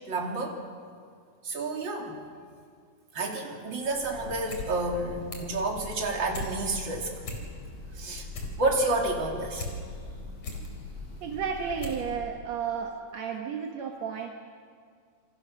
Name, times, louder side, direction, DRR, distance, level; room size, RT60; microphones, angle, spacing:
voice 1, 0.1-0.6 1.4-2.2 3.1-7.1 8.0-8.2 8.6-9.6, right 2 dB, 30° right, 0 dB, 3.0 m, -30 dB
Breathing / Bird, 3.8-12.4, left 3 dB, 75° left, 7.4 m, -43 dB
sound 1, 4.5-4.7 5.0-5.6 6.0-6.5 6.9-7.0 7.2-7.8 8.1-9.7 10.1-10.7 11.2-11.3 11.8-12.1 12.3-12.4, left 2 dB, 40° left, 4.0 m, -38 dB
voice 2, 11.2-14.3, right 7 dB, 60° right, 2 dB, 1.8 m, -33 dB
27.5 x 24.0 x 6.3 m, 2.1 s
omnidirectional pair, 4.9 m